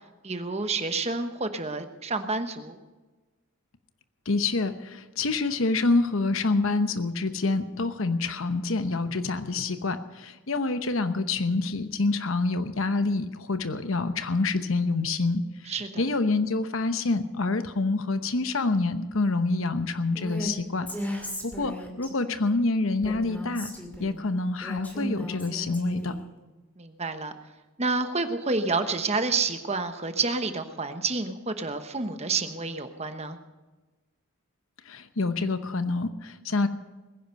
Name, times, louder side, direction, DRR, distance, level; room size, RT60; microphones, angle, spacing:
voice 1, 0.2-2.8 15.7-16.0 26.8-27.3 27.8-33.4, right 3 dB, 30° right, 8 dB, 1.1 m, -29 dB
voice 2, 4.3-20.9 21.4-23.7 24.0-26.1 34.9-36.7, left 3 dB, 65° left, 10 dB, 0.9 m, -27 dB
Female speech woman speaking, 20.2-20.5 20.9-22.1 23.0-24.1 24.6-26.3, left 1 dB, 10° left, 2.4 m, -35 dB
21.0 x 10.0 x 5.3 m, 1.2 s
head